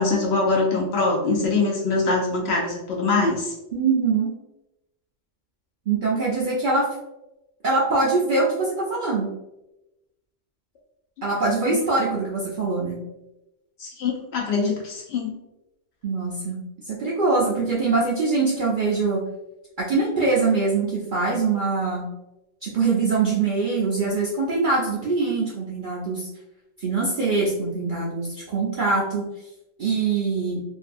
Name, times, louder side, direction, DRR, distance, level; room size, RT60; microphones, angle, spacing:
voice 1, 0.0-3.5 11.7-11.8 13.8-15.3, left 3 dB, 65° left, -1 dB, 0.7 m, -23 dB
voice 2, 3.7-4.3 5.9-6.9 7.6-9.3 11.2-13.0 16.0-19.2 19.8-22.1 22.6-26.3 26.8-29.3 29.8-30.6, right 3 dB, 60° right, -5 dB, 0.5 m, -23 dB
2.6 x 2.3 x 2.5 m, 0.95 s
omnidirectional pair, 1.3 m